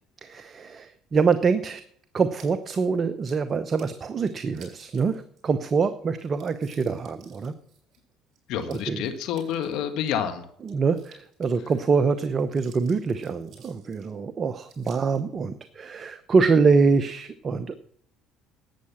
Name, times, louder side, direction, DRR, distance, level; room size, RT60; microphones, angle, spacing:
voice 1, 0.2-1.8 2.1-7.5 8.7-9.0 10.7-17.8, right 5 dB, 40° right, 11 dB, 0.8 m, -24 dB
sound 1, 2.4-3.4 3.7-4.0 4.5-5.4 5.7-5.8 6.1-10.1 10.6-11.8 12.2-14.1 14.6-15.2, right 6 dB, 60° right, 6.3 m, -55 dB
voice 2, 8.5-10.4 11.6-11.7, left 9 dB, 70° left, 8 dB, 1.5 m, -28 dB
11.5 x 8.6 x 7.2 m, 0.67 s
supercardioid pair, 70°, 0 cm